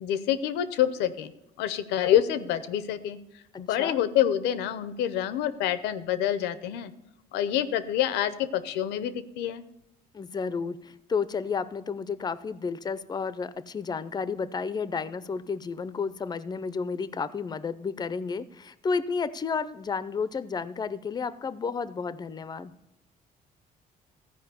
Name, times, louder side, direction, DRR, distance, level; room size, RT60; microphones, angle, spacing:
voice 1, 0.0-1.3 1.6-3.2 3.6-6.9 7.3-9.6, left 10 dB, 90° left, 13 dB, 0.7 m, -27 dB
voice 2, 10.1-22.7, left 5 dB, 25° left, 15 dB, 0.5 m, -32 dB
14.5 x 5.0 x 6.9 m, 0.87 s
cardioid pair, 110°, 17 cm